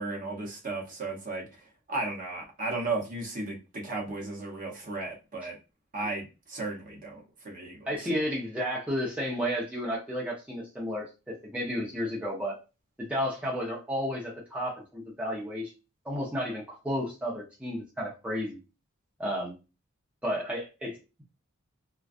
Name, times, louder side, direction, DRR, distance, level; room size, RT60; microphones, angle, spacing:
voice 1, 0.0-1.5 1.9-5.6 5.9-7.9, right 2 dB, 40° right, -2 dB, 0.8 m, -35 dB
voice 2, 7.9-12.6 13.0-15.7 16.0-18.6 19.2-19.5 20.2-21.2, equal, 5° right, -5 dB, 0.6 m, -32 dB
2.5 x 2.2 x 2.4 m, 0.29 s
head